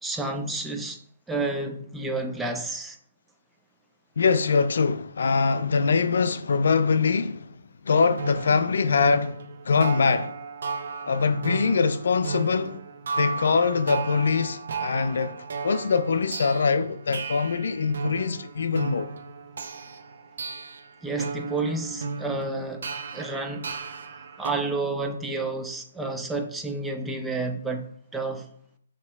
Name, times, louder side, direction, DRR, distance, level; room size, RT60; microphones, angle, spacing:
voice 1, 0.0-1.0 1.3-3.0 21.0-23.7 24.4-28.5, right 3 dB, 5° right, 0.5 m, -30 dB
voice 2, 4.2-7.6 7.8-10.3 11.1-12.8 13.2-19.1, left 5 dB, 65° left, 0.3 m, -23 dB
sound 1, 8.2-24.5, right 4 dB, 60° right, 0.6 m, -35 dB
6.8 x 2.9 x 2.3 m
figure-of-eight pair, 135°, 0 cm